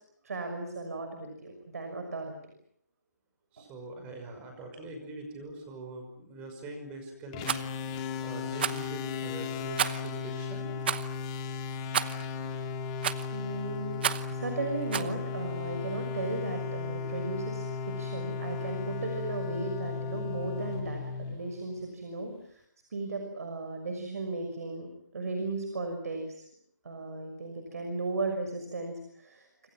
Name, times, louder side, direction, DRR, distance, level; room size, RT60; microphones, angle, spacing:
voice 1, 0.2-2.3 3.6-3.7 12.3-12.5 13.3-22.6 22.9-24.9 25.1-26.4 26.8-29.7, right 3 dB, 60° right, 5 dB, 6.1 m, -36 dB
voice 2, 3.5-7.6 8.2-10.7, right 2 dB, 15° right, 4 dB, 5.5 m, -43 dB
sound 1, 7.3-21.9, left 6 dB, 20° left, 2.5 m, -36 dB
Rattle, 7.4-7.7 8.6-8.9 9.8-10.1 10.8-11.1 11.9-12.3 13.0-13.4 14.0-14.3 14.9-15.1, right 8 dB, 35° right, 1.0 m, -30 dB
29.0 x 27.5 x 6.1 m, 0.65 s
hypercardioid pair, 165°, 10 cm